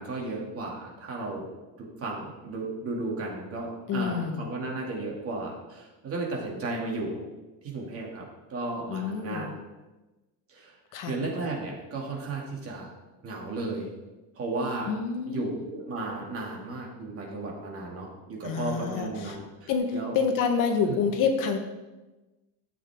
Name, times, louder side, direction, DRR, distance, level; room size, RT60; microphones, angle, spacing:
voice 1, 0.0-1.5 1.8-7.2 7.6-8.2 8.5-9.5 10.5-10.7 11.1-12.9 13.2-13.9 14.4-14.9 15.3-20.1 20.9-21.0, right 2 dB, 35° right, -1 dB, 2.3 m, -34 dB
voice 2, 3.9-4.5 8.9-9.5 10.9-11.2 14.9-15.4 18.4-19.4 19.7-21.6, left 5 dB, 50° left, 5 dB, 1.2 m, -28 dB
13.5 x 7.7 x 3.6 m, 1.1 s
cardioid pair, 160°, 41 cm